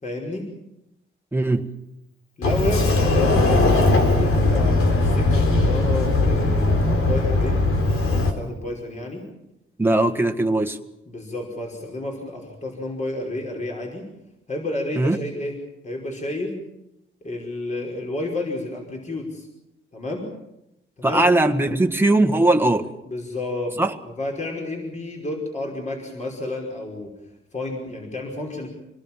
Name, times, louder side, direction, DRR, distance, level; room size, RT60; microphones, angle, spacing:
voice 1, 0.0-0.5 2.4-7.6 8.1-9.2 11.1-14.0 14.5-15.6 15.8-16.6 17.2-19.5 19.9-20.3 21.0-21.3 23.0-27.1 27.5-28.7, left 2 dB, 35° left, 0 dB, 5.3 m, -30 dB
voice 2, 1.3-1.7 9.8-10.8 15.0-15.2 21.0-22.9 23.8-23.9, right 2 dB, 10° right, 5 dB, 1.7 m, -19 dB
Sliding door, 2.4-8.3, left 2 dB, 85° left, 4.0 m, -19 dB
27.0 x 19.5 x 7.4 m, 0.88 s
cardioid pair, 115°, 21 cm